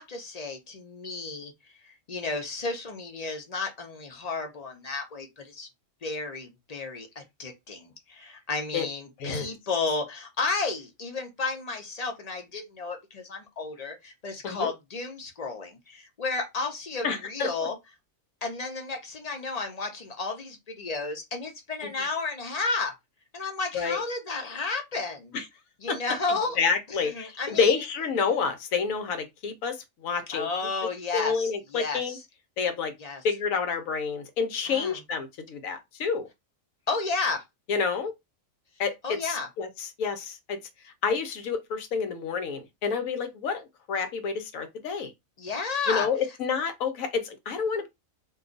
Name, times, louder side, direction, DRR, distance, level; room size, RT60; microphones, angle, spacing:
voice 1, 0.0-1.5 1.8-5.7 6.0-17.7 18.4-22.9 23.3-25.3 25.8-26.6 27.0-27.7 30.3-32.2 33.0-33.2 34.7-35.0 36.9-37.4 39.0-39.5 45.4-46.1, left 3 dB, 40° left, 0.6 m, -32 dB
voice 2, 9.2-9.5 14.4-14.7 17.0-17.5 21.8-21.9 23.7-24.0 25.3-25.4 25.9-26.0 26.3-30.5 31.1-32.2 32.6-32.9 33.2-36.3 37.7-38.1 38.8-40.6 40.8-45.1 45.9-47.9, left 5 dB, 90° left, 1.1 m, -29 dB
2.6 x 2.3 x 3.7 m
omnidirectional pair, 1.4 m